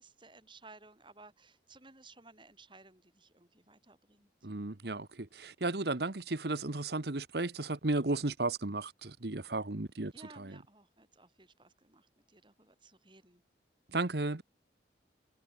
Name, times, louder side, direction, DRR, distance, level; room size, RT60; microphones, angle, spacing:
voice 1, 0.0-4.3 10.1-13.4, right 3 dB, 25° right, 5.7 m, -58 dB
voice 2, 4.4-10.1 10.4-10.5 13.9-14.4, right 2 dB, 60° right, 1.2 m, -34 dB
head